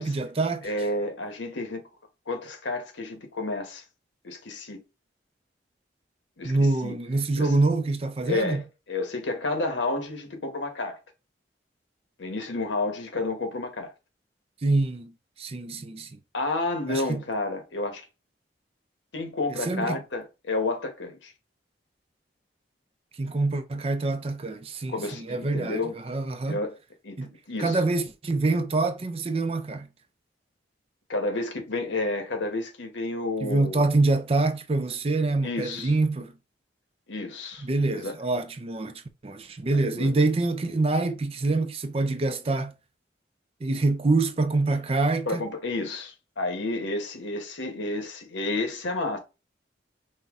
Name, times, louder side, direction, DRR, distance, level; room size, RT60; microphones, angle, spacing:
voice 1, 0.0-0.7 6.4-8.6 14.6-15.1 15.4-16.1 16.9-17.2 19.5-20.0 23.2-26.6 27.2-27.3 27.6-29.9 33.4-36.3 37.6-42.7 43.6-45.4, right 2 dB, 30° right, 0.4 m, -25 dB
voice 2, 0.6-1.8 2.3-3.8 4.2-4.8 6.4-6.9 7.4-7.5 8.2-8.6 8.9-11.0 12.2-13.9 16.3-18.0 19.1-21.3 24.9-26.0 26.5-26.7 27.0-27.2 27.5-27.8 31.1-33.8 35.4-35.9 37.1-37.6 37.9-38.1 39.7-40.1 45.3-49.2, left 2 dB, 90° left, 1.1 m, -30 dB
5.4 x 2.2 x 3.6 m
head